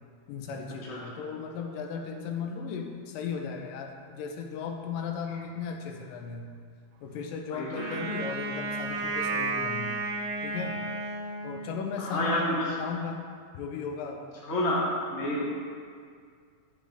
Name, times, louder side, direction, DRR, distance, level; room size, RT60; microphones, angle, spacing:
voice 1, 0.3-6.5 7.0-10.0 10.4-10.8 11.4-13.2 13.5-14.2, left 5 dB, 90° left, 3 dB, 2.5 m, -36 dB
voice 2, 0.9-1.2 7.5-8.0 12.0-12.7 14.5-15.4, left 1 dB, 35° left, -5 dB, 1.1 m, -29 dB
Wind instrument woodwind instrument, 7.7-11.9, right 3 dB, 70° right, 1.8 m, -33 dB
10.0 x 7.7 x 3.4 m, 2.1 s
omnidirectional pair, 3.8 m